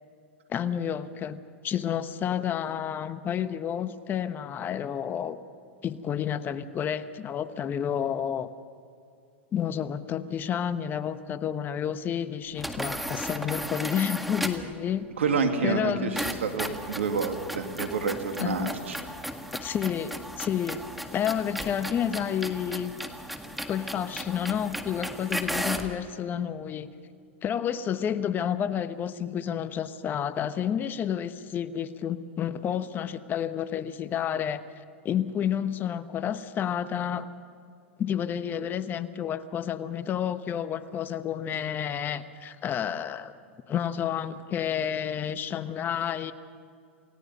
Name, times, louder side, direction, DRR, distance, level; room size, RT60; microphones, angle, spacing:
voice 1, 0.5-5.4 5.8-8.5 9.5-15.0 15.6-16.2 18.4-18.7 19.6-20.8 21.1-23.0 23.7-26.9 27.4-34.6 35.0-37.3 38.0-43.4 43.7-46.3, left 9 dB, 30° left, 12 dB, 1.2 m, -30 dB
sound 1, 12.6-14.7 16.2-26.0, equal, ahead, 1.7 m, -35 dB
voice 2, 15.2-19.0, right 5 dB, 85° right, 5 dB, 2.3 m, -28 dB
29.0 x 17.0 x 5.4 m, 2.4 s
hypercardioid pair, 110°, 7 cm